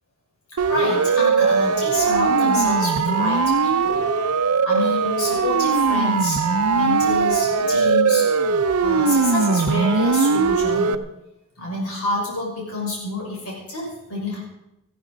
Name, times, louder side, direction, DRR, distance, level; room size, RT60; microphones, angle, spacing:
Siren, 0.6-11.0, right 5 dB, 85° right, 0.7 m, -20 dB
voice 1, 0.7-4.0 4.6-6.5 6.7-8.3 8.8-11.0 11.6-14.4, left 2 dB, 80° left, -3 dB, 6.1 m, -28 dB
18.0 x 15.5 x 4.0 m, 0.87 s
head